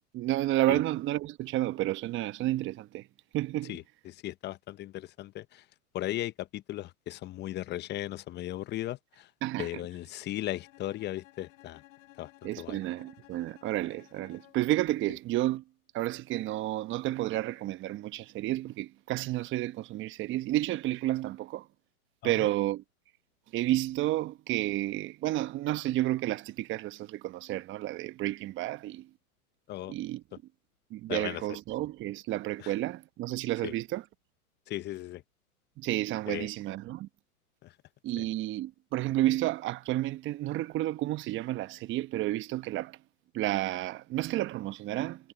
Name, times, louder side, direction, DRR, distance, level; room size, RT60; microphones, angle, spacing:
voice 1, 0.1-3.0 3.3-3.8 9.4-9.8 12.4-15.6 15.9-21.6 22.2-22.8 23.5-29.1 29.9-30.2 30.9-34.0 35.8-37.1 38.0-43.0 43.3-45.3, right 15 dB, 25° right, 1.1 m, -31 dB
voice 2, 3.7-5.6 5.9-9.3 9.6-11.8 12.2-12.8 22.2-22.5 29.7-29.9 30.3-30.4 31.1-31.6 32.6-32.7 33.6-33.7 34.7-35.2 36.3-36.5 37.6-37.7 38.2-38.3, left 14 dB, 25° left, 0.9 m, -37 dB
Bowed string instrument, 10.5-14.8, left 16 dB, 55° left, 7.8 m, -57 dB
hypercardioid pair, 115°, 44 cm